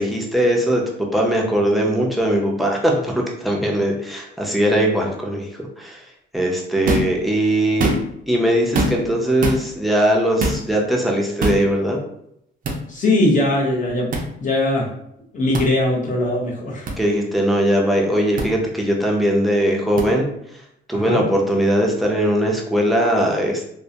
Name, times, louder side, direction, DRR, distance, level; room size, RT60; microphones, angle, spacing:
voice 1, 0.0-5.5 5.8-6.0 6.3-7.9 8.3-12.0 17.0-20.3 20.9-23.7, equal, ahead, 0 dB, 0.6 m, -20 dB
sound 1, 6.8-7.2 7.7-8.2 8.7-9.1 9.4-9.6 10.4-10.6 11.4-11.6 12.6-12.8 14.1-14.3 15.5-15.7 16.9-17.0 18.4-18.5 20.0-20.1, right 2 dB, 45° right, 0.5 m, -22 dB
voice 2, 12.9-14.1 14.4-14.9 15.3-16.9 20.9-21.2, left 1 dB, 40° left, -2 dB, 0.9 m, -20 dB
2.2 x 2.1 x 2.7 m, 0.75 s
cardioid pair, 90°, 20 cm